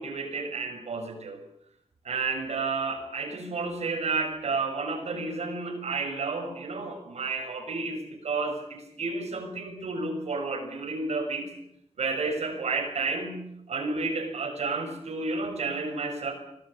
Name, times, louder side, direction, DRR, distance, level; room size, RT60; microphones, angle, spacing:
voice 1, 0.0-1.4 2.0-11.5 12.0-16.3, right 3 dB, 80° right, 2 dB, 7.0 m, -31 dB
25.5 x 18.5 x 8.6 m, 0.78 s
wide cardioid pair, 150°, 11 cm